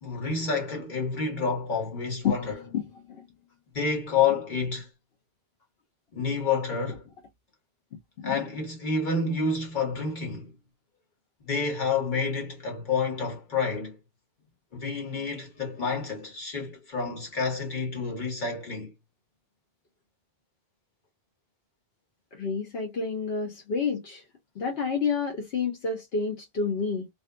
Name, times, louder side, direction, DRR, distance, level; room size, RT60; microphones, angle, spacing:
voice 1, 0.0-2.7 3.7-4.9 6.1-7.0 8.2-10.5 11.4-14.0 14.7-18.9, left 4 dB, 50° left, 1.4 m, -29 dB
voice 2, 2.2-2.8 3.1-3.2 8.2-8.4 22.3-24.2 24.6-27.1, left 5 dB, 80° left, 1.0 m, -29 dB
2.6 x 2.4 x 2.3 m
omnidirectional pair, 1.0 m